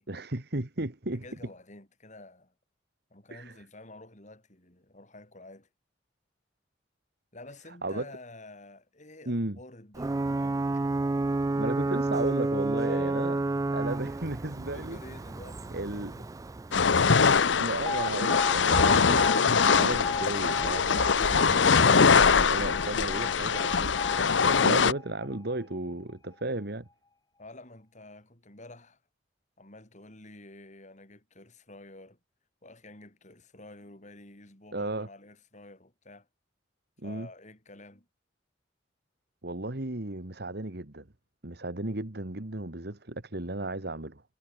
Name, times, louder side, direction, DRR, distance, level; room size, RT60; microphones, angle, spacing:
voice 1, 0.1-1.2 3.3-3.6 7.8-8.1 9.3-9.6 11.5-13.4 13.7-15.0 15.7-16.1 17.6-26.9 34.7-35.1 37.0-37.3 39.4-41.1 41.4-44.2, right 2 dB, 60° right, 2.0 m, -35 dB
voice 2, 1.2-2.5 3.1-5.7 7.3-10.6 12.8-13.5 14.7-16.3 27.4-29.0 29.6-32.2 32.6-36.3 37.0-38.1, left 2 dB, 40° left, 5.0 m, -49 dB
Ocean / Boat Water vehicle / Alarm, 9.9-17.5, right 2 dB, 20° right, 0.3 m, -30 dB
sound 1, 16.7-24.9, left 5 dB, 75° left, 0.8 m, -23 dB
Alarm, 17.9-25.9, left 3 dB, 20° left, 3.1 m, -36 dB
head